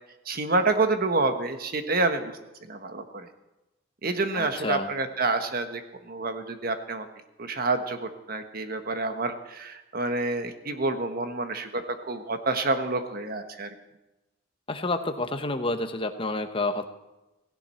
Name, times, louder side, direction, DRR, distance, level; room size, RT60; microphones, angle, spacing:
voice 1, 0.3-2.3 2.7-3.3 4.0-5.8 6.1-7.1 7.4-13.7, right 3 dB, 45° right, 7 dB, 1.4 m, -28 dB
voice 2, 4.4-4.9 14.7-16.9, left 2 dB, 25° left, 7 dB, 1.1 m, -29 dB
17.0 x 16.0 x 4.4 m, 1.0 s
head